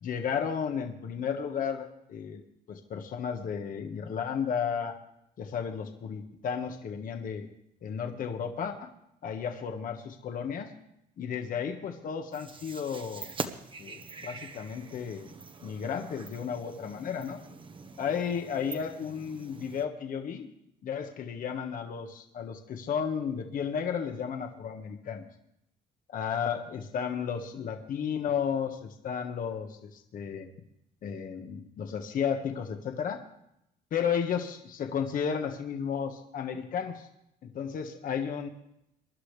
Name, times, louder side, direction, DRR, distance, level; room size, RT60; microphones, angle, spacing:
voice 1, 0.0-2.4 2.7-4.9 5.4-7.5 7.8-8.9 9.2-10.7 11.2-13.3 13.8-15.3 15.6-17.4 18.0-20.5 20.8-25.2 26.1-30.5 31.0-33.2 33.9-37.1 37.4-38.5, left 7 dB, 55° left, 5 dB, 1.5 m, -33 dB
sound 1, 12.3-19.9, right 4 dB, 30° right, 1.1 m, -44 dB
23.5 x 11.5 x 3.4 m, 0.79 s
cardioid pair, 110°, 17 cm